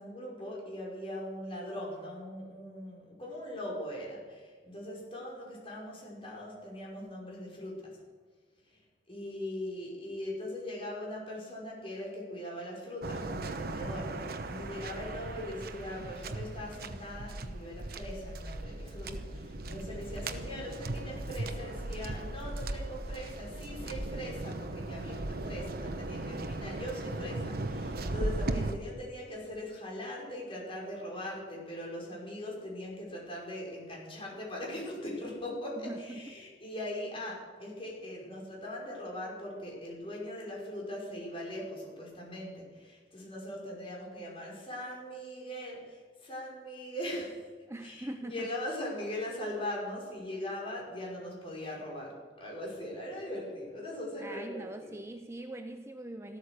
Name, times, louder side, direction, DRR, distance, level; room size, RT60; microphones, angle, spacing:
voice 1, 0.0-8.0 8.7-8.8 9.1-47.5 47.8-54.9, left 1 dB, 30° left, -3 dB, 5.4 m, -40 dB
Waves surf, 13.0-28.7, right 2 dB, 55° right, 1.1 m, -37 dB
voice 2, 35.8-36.3 47.7-48.5 54.2-56.4, right 1 dB, 15° right, 6 dB, 0.6 m, -42 dB
14.5 x 13.5 x 6.7 m, 1.5 s
head